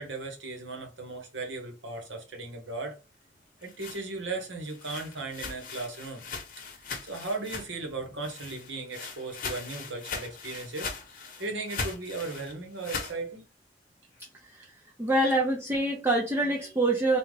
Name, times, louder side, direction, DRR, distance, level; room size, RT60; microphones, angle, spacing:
voice 1, 0.0-3.0 3.6-6.3 7.0-10.9 11.4-13.4, right 3 dB, 80° right, 1.1 m, -36 dB
sound 1, 3.4-7.9 8.2-13.2, left 4 dB, 50° left, 0.9 m, -39 dB
voice 2, 15.0-17.2, right 2 dB, 15° right, 0.5 m, -25 dB
3.6 x 2.3 x 3.2 m
head